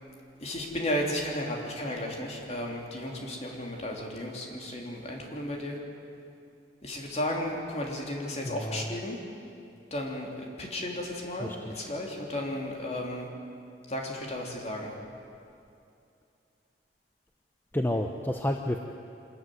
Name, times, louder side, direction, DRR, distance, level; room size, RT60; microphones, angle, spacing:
voice 1, 0.4-5.8 6.8-9.2 9.9-13.3 13.9-14.9, left 1 dB, 40° left, 0 dB, 3.2 m, -34 dB
voice 2, 8.5-8.9 11.4-11.9 17.7-18.8, left 1 dB, 10° left, 4 dB, 0.8 m, -31 dB
25.0 x 14.0 x 9.5 m, 2.6 s
head